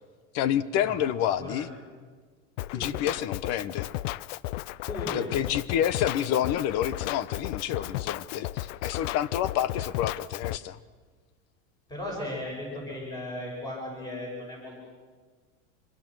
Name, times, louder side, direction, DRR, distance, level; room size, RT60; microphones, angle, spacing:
voice 1, 0.3-1.7 2.7-3.9 5.1-10.8, left 10 dB, 40° left, 17 dB, 0.9 m, -28 dB
voice 2, 1.4-1.7 2.7-3.0 4.8-5.3 11.9-14.8, left 1 dB, 10° left, -2 dB, 6.8 m, -36 dB
Drum kit, 2.6-10.6, left 16 dB, 70° left, 0.6 m, -34 dB
25.5 x 22.5 x 6.2 m, 1.5 s
supercardioid pair, 145°, 38 cm